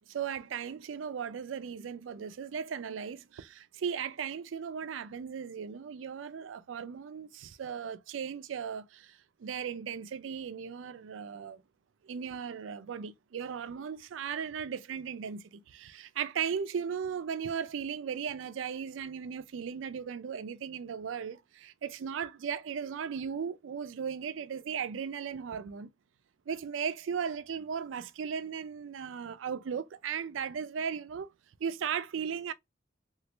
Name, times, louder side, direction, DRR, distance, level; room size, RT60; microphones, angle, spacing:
voice 1, 0.1-11.6 12.0-25.9 26.5-31.3 31.6-32.5, right 7 dB, 85° right, 0.4 m, -37 dB
3.0 x 2.4 x 3.2 m
head